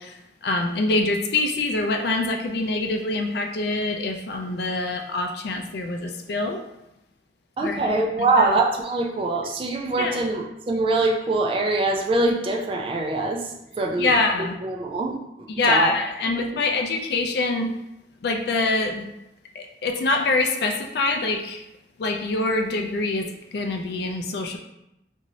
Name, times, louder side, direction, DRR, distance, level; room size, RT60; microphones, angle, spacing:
voice 1, 0.0-6.6 7.6-8.0 8.4-8.5 10.0-10.2 14.0-14.6 15.5-17.7 18.2-19.1 19.5-21.6 22.0-24.6, left 2 dB, 60° left, 4 dB, 0.4 m, -25 dB
voice 2, 7.6-13.5 13.8-15.9, right 2 dB, 30° right, 0 dB, 0.3 m, -24 dB
3.0 x 2.6 x 2.6 m, 0.86 s
head